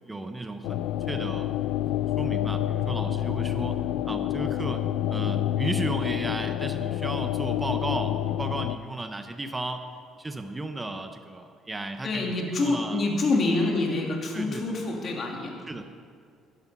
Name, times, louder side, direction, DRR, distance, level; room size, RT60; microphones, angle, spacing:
voice 1, 0.1-1.5 2.2-3.8 4.0-9.8 10.2-13.0 14.3-14.6 15.7-15.8, right 2 dB, 15° right, 7 dB, 0.6 m, -34 dB
sound 1, 0.6-8.8, left 11 dB, 80° left, 0.3 m, -28 dB
voice 2, 12.0-15.5, left 2 dB, 40° left, 0 dB, 2.3 m, -26 dB
11.5 x 11.0 x 5.5 m, 2.2 s
cardioid pair, 135°, 0 cm